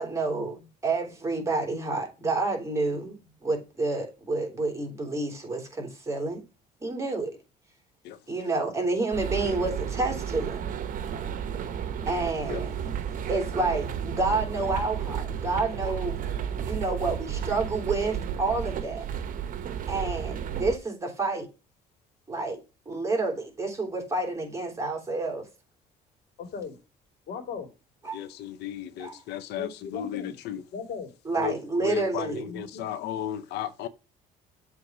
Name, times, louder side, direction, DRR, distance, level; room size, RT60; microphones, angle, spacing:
voice 1, 0.0-6.4 6.8-7.4 8.3-10.7 12.1-12.7 13.3-16.2 16.7-19.0 19.9-21.5 22.3-22.6 22.8-25.5 28.0-28.2 29.0-29.2 31.2-32.4, right 3 dB, 15° right, 3.3 m, -29 dB
sound 1, 9.1-20.8, right 8 dB, 55° right, 1.0 m, -32 dB
voice 2, 26.4-26.7 27.3-27.7 29.5-30.3 30.7-31.1 32.5-32.9, left 5 dB, 65° left, 2.4 m, -38 dB
voice 3, 28.1-30.6 31.4-33.9, left 10 dB, 80° left, 0.7 m, -34 dB
7.7 x 3.7 x 5.9 m
cardioid pair, 110°, 17 cm